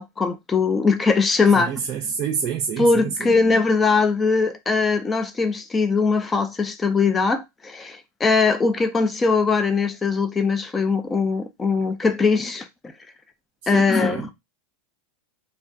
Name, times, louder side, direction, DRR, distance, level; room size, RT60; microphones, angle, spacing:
voice 1, 0.0-1.7 2.8-12.7 13.7-14.3, left 4 dB, 15° left, 0.3 m, -21 dB
voice 2, 1.6-3.4 13.7-14.3, right 7 dB, 40° right, 0.5 m, -28 dB
2.5 x 2.3 x 3.3 m
supercardioid pair, 130°, 0 cm